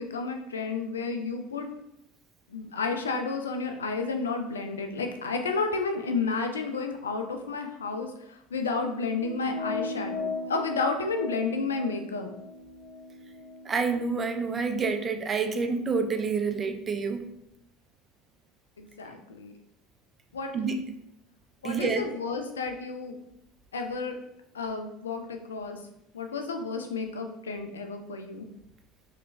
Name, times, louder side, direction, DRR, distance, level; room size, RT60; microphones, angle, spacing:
voice 1, 0.0-1.7 2.5-12.3 18.8-19.5 20.3-20.5 21.6-23.1 23.7-24.2 24.5-25.8 26.1-28.5, left 4 dB, 85° left, 5 dB, 0.3 m, -31 dB
sound 1, 9.2-14.0, left 4 dB, 30° left, 0.7 m, -37 dB
voice 2, 13.7-17.2 20.5-20.8 21.6-22.1, right 4 dB, 30° right, 7 dB, 0.4 m, -28 dB
3.2 x 3.0 x 2.5 m, 0.81 s
hypercardioid pair, 70°, 0 cm